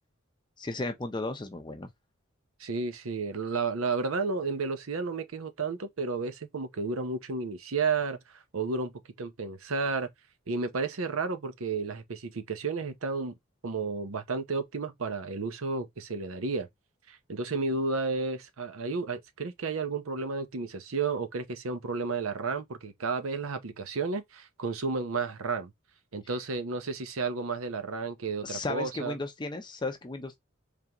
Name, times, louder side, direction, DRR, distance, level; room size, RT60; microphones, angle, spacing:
voice 1, 0.6-1.9 28.4-30.4, left 2 dB, 20° left, 0.5 m, -35 dB
voice 2, 2.6-8.2 8.5-8.9 9.2-10.1 10.5-13.3 13.6-16.7 17.1-25.7 26.1-29.2, right 4 dB, 85° right, 0.7 m, -32 dB
3.7 x 3.3 x 2.9 m
head